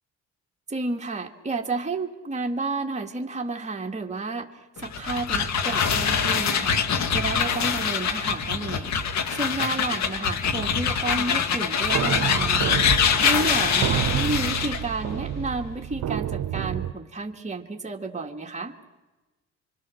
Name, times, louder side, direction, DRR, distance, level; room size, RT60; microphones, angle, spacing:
voice 1, 0.7-4.5 4.8-8.9 9.3-12.8 13.2-18.7, right 3 dB, 25° right, 2 dB, 2.1 m, -31 dB
sound 1, 4.8-14.9, left 6 dB, 65° left, 2.0 m, -24 dB
sound 2, 11.9-16.9, right 10 dB, 65° right, 0.9 m, -29 dB
25.5 x 25.0 x 6.5 m, 1.1 s
cardioid pair, 90°, 30 cm